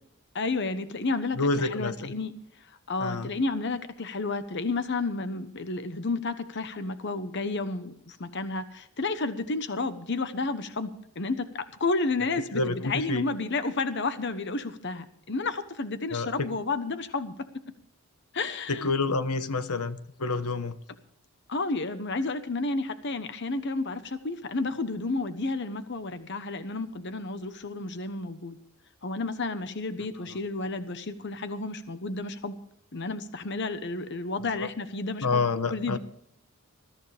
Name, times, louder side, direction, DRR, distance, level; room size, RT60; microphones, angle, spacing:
voice 1, 0.3-2.3 2.9-17.3 18.3-18.9 21.5-28.6 29.0-32.5 32.9-36.0, left 3 dB, 50° left, 10 dB, 1.0 m, -31 dB
voice 2, 1.4-2.1 3.0-3.3 12.5-13.2 16.1-16.5 18.7-20.8 34.6-34.7 35.2-36.0, left 3 dB, 85° left, 11 dB, 1.2 m, -28 dB
21.0 x 14.0 x 3.4 m, 0.70 s
head